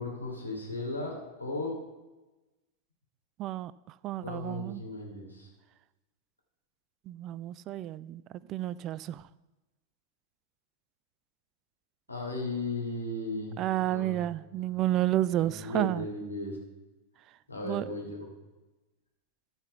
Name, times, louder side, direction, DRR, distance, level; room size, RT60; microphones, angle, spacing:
voice 1, 0.0-1.7 4.2-5.5 12.1-14.2 15.4-16.6 17.5-18.2, left 2 dB, 85° left, -2 dB, 3.1 m, -36 dB
voice 2, 3.4-4.8 7.1-9.3 13.6-16.1 17.6-17.9, right 14 dB, 35° right, 19 dB, 0.3 m, -31 dB
14.5 x 5.8 x 5.6 m, 1.1 s
figure-of-eight pair, 90°, 0 cm